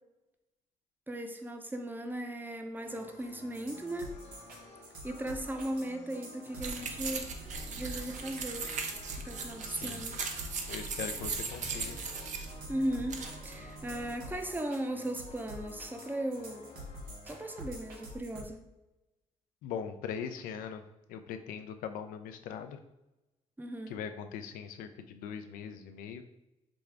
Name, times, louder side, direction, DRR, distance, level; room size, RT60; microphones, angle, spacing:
voice 1, 1.1-4.1 5.0-7.3 7.8-8.7 9.2-10.2 12.7-16.6 17.2-18.6 23.6-24.0, right 1 dB, 15° right, 5 dB, 0.6 m, -37 dB
sound 1, 2.8-18.2, left 3 dB, 50° left, 0.7 m, -53 dB
sound 2, 3.5-18.4, right 1 dB, 80° right, 1.0 m, -47 dB
sound 3, 6.6-14.2, right 5 dB, 60° right, 0.6 m, -39 dB
voice 2, 9.6-10.1 10.7-12.0 19.6-20.8 21.1-22.8 23.9-26.2, left 7 dB, 80° left, 8 dB, 0.4 m, -41 dB
5.1 x 2.3 x 3.3 m, 0.96 s
supercardioid pair, 55°, 14 cm